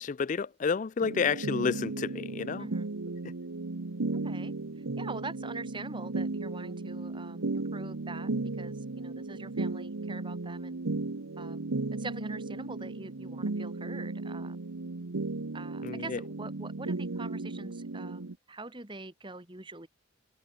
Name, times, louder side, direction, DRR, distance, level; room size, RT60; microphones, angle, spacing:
voice 1, 0.0-2.7 15.8-16.2, left 5 dB, 35° left, 0.3 m, -30 dB
sound 1, 1.0-18.3, right 3 dB, 90° right, 1.0 m, -35 dB
voice 2, 4.1-10.8 11.4-14.6 15.5-19.9, right 3 dB, 25° right, 1.7 m, -44 dB
head